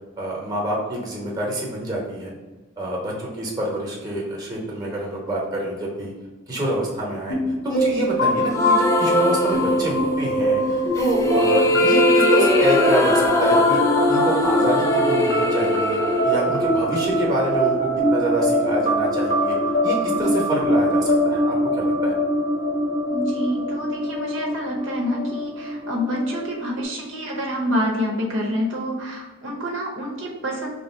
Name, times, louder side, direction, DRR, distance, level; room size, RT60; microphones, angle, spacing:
voice 1, 0.2-2.3 2.8-6.1 6.5-7.4 7.6-10.6 10.9-13.8 14.1-16.0 16.2-19.6 19.8-22.1, right 1 dB, 20° right, -3 dB, 1.0 m, -27 dB
sound 1, 7.3-26.8, equal, 60° left, 1.0 m, -23 dB
sound 2, 8.5-10.2 11.0-17.1, left 1 dB, 15° left, 0.3 m, -21 dB
voice 2, 23.1-30.7, equal, 65° right, -1 dB, 0.8 m, -27 dB
3.3 x 2.6 x 4.3 m, 1.2 s
head